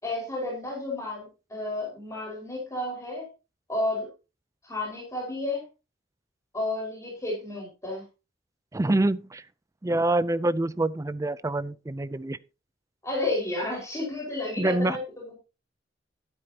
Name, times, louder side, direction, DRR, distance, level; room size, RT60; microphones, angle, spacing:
voice 1, 0.0-3.3 3.7-4.1 4.6-5.6 6.5-8.0 13.0-15.4, left 2 dB, 15° left, 5.0 m, -31 dB
voice 2, 8.7-9.4 9.8-12.4 14.6-15.0, right 2 dB, 15° right, 0.4 m, -26 dB
12.5 x 12.0 x 2.8 m
head